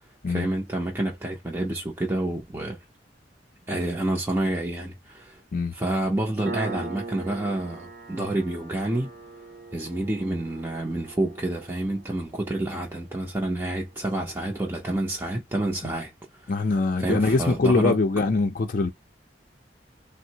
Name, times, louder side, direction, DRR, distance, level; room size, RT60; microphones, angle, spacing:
voice 1, 0.3-2.8 3.7-5.4 5.7-9.1 9.7-16.1 16.4-16.5 17.0-18.0, right 1 dB, 15° right, 0.5 m, -28 dB
Piano, 6.5-13.6, right 3 dB, 55° right, 0.7 m, -41 dB
voice 2, 16.5-18.9, left 3 dB, 50° left, 0.5 m, -23 dB
3.5 x 2.0 x 2.8 m
head